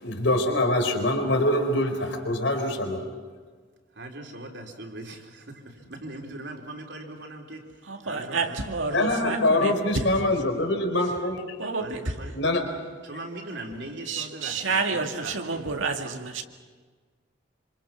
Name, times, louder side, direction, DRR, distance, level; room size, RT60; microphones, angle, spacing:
voice 1, 0.0-3.1 8.9-11.6 12.3-12.7, left 1 dB, 75° left, 4.2 m, -24 dB
voice 2, 4.0-7.7 8.0-8.6 11.8-12.3 13.0-15.7 16.0-16.2, right 2 dB, 60° right, 3.9 m, -40 dB
voice 3, 7.8-10.2 11.0-11.1 11.6-12.4 14.0-16.4, right 4 dB, 85° right, 2.1 m, -30 dB
26.5 x 26.5 x 6.2 m
head